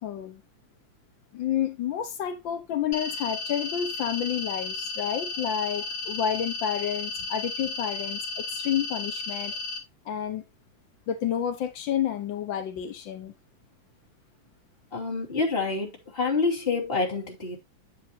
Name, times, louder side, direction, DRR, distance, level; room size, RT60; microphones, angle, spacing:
voice 1, 0.0-0.4 1.3-9.5 10.0-10.4 11.1-13.3, left 9 dB, 85° left, 1.0 m, -30 dB
sound 1, 2.9-9.8, left 3 dB, 55° left, 2.0 m, -34 dB
voice 2, 14.9-17.6, left 4 dB, 20° left, 2.8 m, -27 dB
9.5 x 7.8 x 2.8 m
omnidirectional pair, 3.4 m